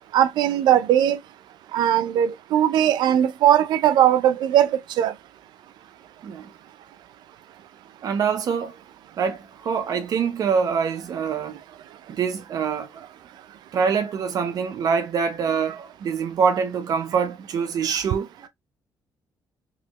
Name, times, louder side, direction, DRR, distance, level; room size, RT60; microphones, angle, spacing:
voice 1, 0.1-1.2 1.7-5.1, right 11 dB, 80° right, 0.5 m, -19 dB
voice 2, 8.0-8.8 9.2-11.6 12.1-13.1 13.7-18.5, right 6 dB, 55° right, 0.9 m, -25 dB
4.0 x 2.9 x 2.9 m
cardioid pair, 130°, 7 cm